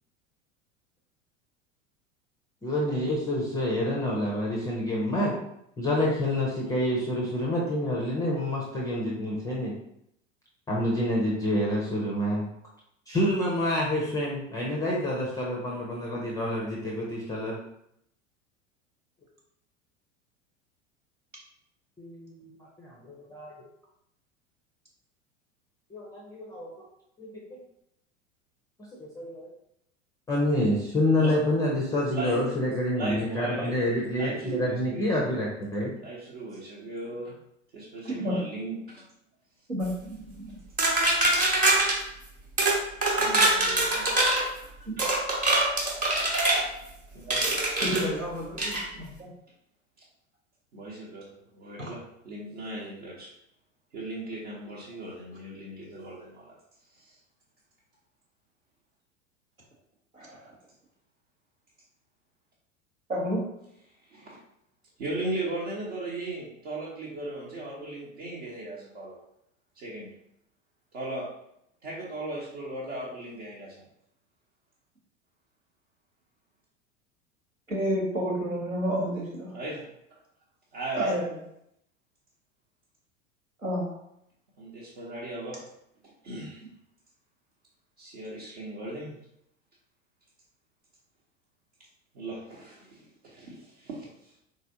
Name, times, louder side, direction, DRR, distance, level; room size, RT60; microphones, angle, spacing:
voice 1, 2.6-5.3 5.8-9.7 10.7-12.5 13.1-17.6 22.0-22.5 22.8-23.5 25.9-26.7 27.2-27.6 29.0-29.5 30.3-35.9, left 1 dB, 10° left, -3 dB, 0.4 m, -28 dB
voice 2, 32.1-32.5 32.9-33.7 34.2-35.1 36.0-37.4 37.7-39.0 43.2-44.4 45.0-45.1 47.1-47.7 50.7-51.2 51.5-53.3 53.9-56.5 56.9-57.2 64.1-64.4 65.0-69.2 69.7-70.1 70.9-71.3 71.8-73.8 79.5-79.8 80.7-81.2 84.6-85.6 86.0-86.6 88.0-89.2 92.1-94.3, right 2 dB, 55° right, -7 dB, 1.0 m, -37 dB
voice 3, 39.7-40.6 47.8-49.3 51.8-51.9 60.1-60.4 63.1-63.4 77.7-79.5 81.0-81.4 83.6-83.9, equal, 90° right, -3 dB, 1.1 m, -30 dB
sound 1, 40.8-42.0 42.6-42.8 43.0-44.4 45.0-46.6 47.3-48.0 48.6-48.8, right 2 dB, 20° right, 0.9 m, -23 dB
3.9 x 3.2 x 2.6 m, 0.77 s
figure-of-eight pair, 80°, 39 cm